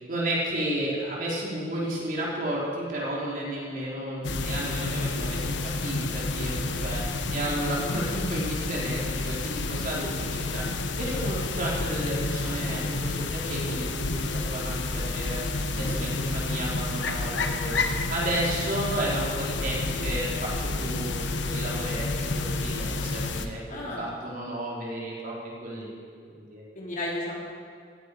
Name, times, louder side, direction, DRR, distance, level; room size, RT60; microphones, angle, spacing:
voice 1, 0.0-26.0 26.3-26.6, right 1 dB, 50° right, -5 dB, 4.4 m, -32 dB
voice 2, 3.7-4.0 15.7-16.0 23.7-24.1 26.7-27.4, left 1 dB, 45° left, -4 dB, 4.0 m, -35 dB
sound 1, 4.2-23.5, left 3 dB, 80° left, 1.2 m, -30 dB
16.5 x 16.0 x 5.1 m, 2.3 s
head